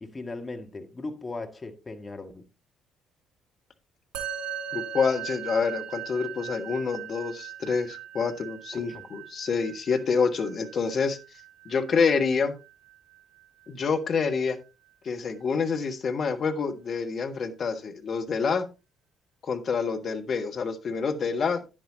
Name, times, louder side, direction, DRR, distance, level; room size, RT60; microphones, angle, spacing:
voice 1, 0.0-2.4 8.7-9.1, left 3 dB, 25° left, 1.9 m, -38 dB
Musical instrument, 4.1-13.7, right 10 dB, 60° right, 2.3 m, -40 dB
voice 2, 4.7-11.2 11.6-12.5 13.7-14.6 15.0-18.7 19.4-21.6, left 5 dB, 45° left, 1.5 m, -27 dB
10.0 x 10.0 x 2.8 m
figure-of-eight pair, 45°, 0 cm